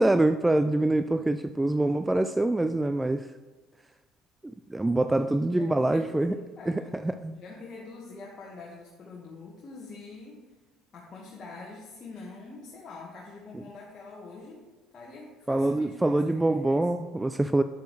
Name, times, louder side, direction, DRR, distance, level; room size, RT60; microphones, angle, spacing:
voice 1, 0.0-3.3 4.4-6.4 6.7-7.4 15.5-17.6, right 2 dB, 10° right, 10 dB, 0.3 m, -25 dB
voice 2, 5.4-6.9 7.4-10.4 10.9-14.6 14.9-16.9, left 3 dB, 40° left, -3 dB, 1.5 m, -45 dB
8.5 x 6.7 x 3.2 m, 1.3 s
hypercardioid pair, 70°, 0 cm